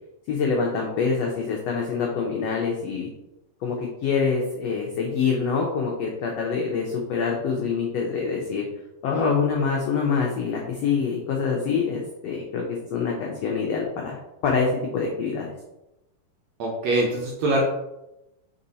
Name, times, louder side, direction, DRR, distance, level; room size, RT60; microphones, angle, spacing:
voice 1, 0.3-3.1 3.6-8.6 9.0-12.6 12.9-14.2 14.4-15.5, left 5 dB, 80° left, 0 dB, 1.4 m, -25 dB
voice 2, 16.6-17.6, right 2 dB, 70° right, -1 dB, 1.7 m, -23 dB
5.5 x 4.3 x 4.0 m, 0.93 s
omnidirectional pair, 3.9 m